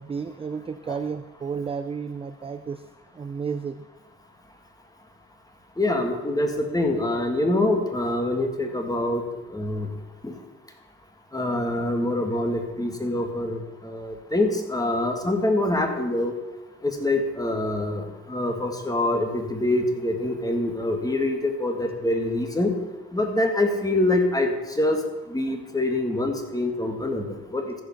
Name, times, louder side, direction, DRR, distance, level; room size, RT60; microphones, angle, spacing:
voice 1, 0.0-2.9 3.1-3.9, right 6 dB, 20° right, 10 dB, 0.3 m, -32 dB
voice 2, 5.8-9.2 9.5-9.9 10.2-10.4 11.3-16.3 16.8-22.7 23.1-25.0 25.3-27.7, left 1 dB, 10° left, 4 dB, 1.7 m, -25 dB
14.5 x 5.3 x 5.7 m, 1.1 s
cardioid pair, 90°, 30 cm